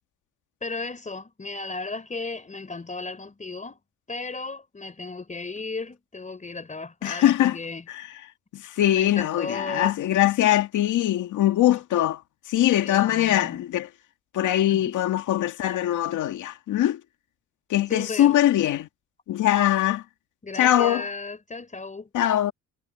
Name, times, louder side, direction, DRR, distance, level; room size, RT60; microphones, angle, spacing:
voice 1, 0.6-3.8 4.1-7.8 8.9-9.9 12.9-13.6 14.7-14.9 17.9-18.3 20.4-22.1, left 3 dB, 25° left, 3.8 m, -35 dB
voice 2, 7.0-7.6 7.9-8.1 8.5-12.2 12.5-13.9 14.3-17.0 17.7-18.9 19.3-20.0 20.6-21.1 22.1-22.5, left 13 dB, 80° left, 2.1 m, -22 dB
cardioid pair, 90°, 30 cm